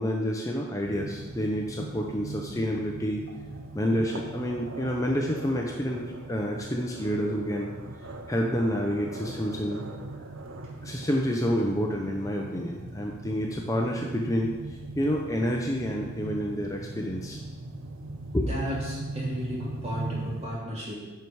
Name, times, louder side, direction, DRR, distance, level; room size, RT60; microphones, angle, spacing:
voice 1, 0.0-3.2 3.7-7.7 8.3-9.8 10.8-14.5 15.0-17.4 18.3-18.5, equal, 15° left, 0 dB, 0.6 m, -28 dB
sound 1, 0.8-20.5, right 2 dB, 80° right, 0.8 m, -40 dB
voice 2, 18.4-21.1, equal, 30° right, -6 dB, 2.6 m, -33 dB
10.5 x 4.7 x 4.7 m, 1.2 s
head